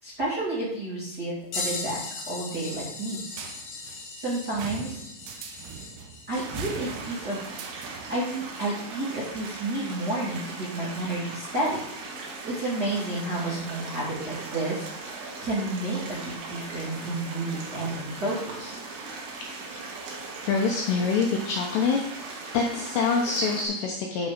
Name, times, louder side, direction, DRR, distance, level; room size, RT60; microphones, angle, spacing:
voice 1, 0.0-3.2 4.1-5.0 6.3-7.4 8.1-11.8 12.5-18.8, right 2 dB, 30° right, -9 dB, 2.0 m, -31 dB
sound 1, 1.5-9.7 10.5-10.6 12.8-12.9 14.0-14.1 15.2-15.3, left 3 dB, 55° left, 3.6 m, -39 dB
sound 2, 3.3-8.3, right 7 dB, 80° right, 3.0 m, -41 dB
sound 3, 6.3-23.7, right 3 dB, 60° right, 3.3 m, -39 dB
voice 2, 20.4-22.0 22.5-24.3, left 5 dB, 75° left, 0 dB, 2.5 m, -25 dB
12.0 x 4.2 x 5.0 m, 0.74 s
omnidirectional pair, 5.8 m